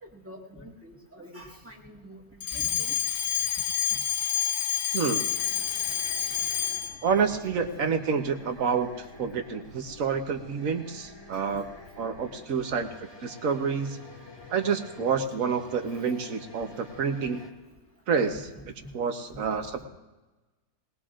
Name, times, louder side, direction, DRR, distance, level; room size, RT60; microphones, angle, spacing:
voice 1, 0.0-2.2 2.5-2.9 18.3-18.6 19.3-19.4, equal, 10° right, -2 dB, 1.7 m, -45 dB
Alarm, 2.4-7.0, left 10 dB, 60° left, 0.7 m, -28 dB
voice 2, 4.9-5.3 7.0-11.7 12.0-12.9 13.2-14.0 14.5-17.4 18.1-18.4 18.9-19.8, right 6 dB, 55° right, 6 dB, 1.3 m, -28 dB
sound 1, 5.3-17.5, left 2 dB, 15° left, 1.4 m, -49 dB
20.0 x 20.0 x 2.5 m, 1.2 s
omnidirectional pair, 1.8 m